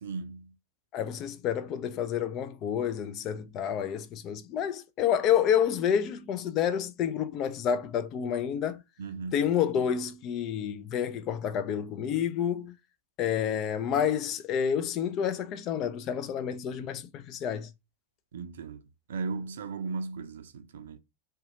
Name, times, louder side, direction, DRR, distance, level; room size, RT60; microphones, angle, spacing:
voice 1, 0.0-0.5 9.0-9.4 18.3-18.8 19.1-21.0, right 4 dB, 70° right, 0.4 m, -36 dB
voice 2, 0.9-8.8 9.3-12.7 13.2-17.7, left 8 dB, 40° left, 0.3 m, -29 dB
2.7 x 2.2 x 2.6 m
figure-of-eight pair, 95°, 0 cm